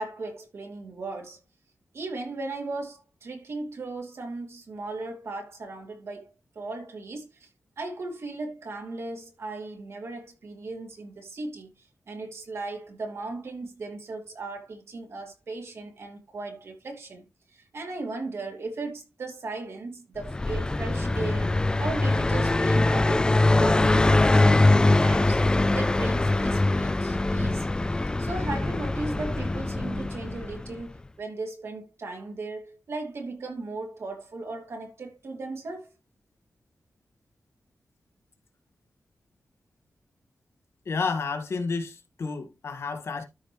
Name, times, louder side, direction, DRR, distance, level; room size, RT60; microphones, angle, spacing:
voice 1, 0.0-1.4 1.9-7.5 7.8-11.7 12.1-17.2 17.5-21.5 21.8-25.4 25.7-27.7 28.2-35.9, right 3 dB, 65° right, 2.9 m, -37 dB
Car passing by, 20.2-30.8, left 2 dB, 15° left, 0.4 m, -23 dB
voice 2, 40.8-43.2, left 4 dB, 65° left, 1.7 m, -30 dB
13.0 x 5.3 x 3.0 m
wide cardioid pair, 160°, 5 cm